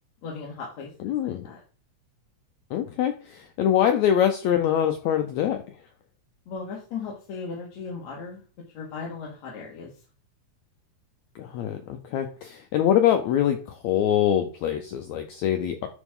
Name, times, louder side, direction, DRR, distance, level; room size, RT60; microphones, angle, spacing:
voice 1, 0.2-1.6 6.5-8.4 8.7-9.9, left 5 dB, 60° left, -3 dB, 2.5 m, -37 dB
voice 2, 1.0-1.5 2.7-5.6 11.3-15.9, left 10 dB, 80° left, 6 dB, 1.7 m, -24 dB
11.0 x 4.1 x 3.7 m, 0.37 s
omnidirectional pair, 3.9 m